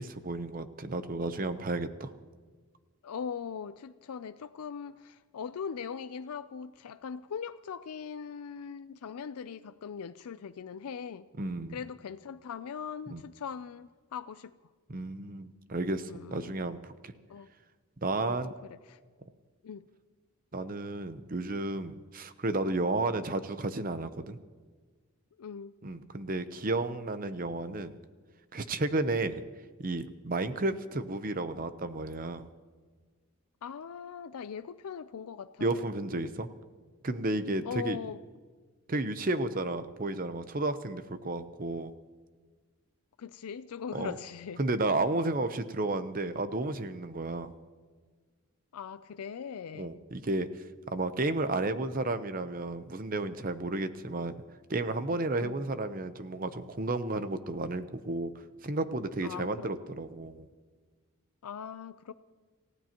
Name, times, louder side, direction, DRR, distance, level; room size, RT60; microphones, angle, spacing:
voice 1, 0.0-2.1 11.4-11.8 13.1-13.2 14.9-17.1 18.0-18.5 20.5-24.4 25.8-27.9 28.5-29.4 29.8-32.5 35.6-36.5 37.0-38.0 38.9-41.9 43.9-44.1 44.6-47.5 49.7-50.5 50.9-54.3 54.7-58.3 58.6-60.5, right 2 dB, 40° right, 11 dB, 0.7 m, -32 dB
voice 2, 3.0-11.3 11.7-14.5 16.1-16.6 17.3-17.5 18.2-19.0 19.6-19.9 23.0-23.1 25.4-25.7 29.0-29.2 33.6-35.8 37.6-38.2 43.2-44.6 48.7-50.0 55.4-55.7 59.2-59.7 61.4-62.1, left 7 dB, 90° left, 12 dB, 0.4 m, -40 dB
27.5 x 15.5 x 2.9 m, 1.5 s
head